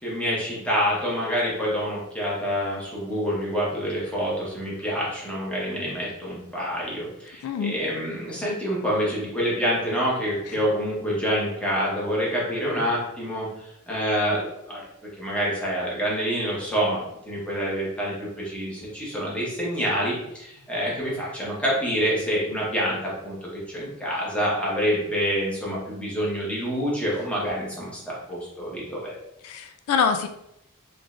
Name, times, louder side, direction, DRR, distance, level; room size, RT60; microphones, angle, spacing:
voice 1, 0.0-14.8 15.2-23.3 23.7-29.1, equal, 5° left, -6 dB, 1.2 m, -27 dB
voice 2, 7.4-7.8 10.5-10.6 29.4-30.3, left 6 dB, 80° left, 12 dB, 0.3 m, -25 dB
3.8 x 3.2 x 2.5 m, 0.81 s
head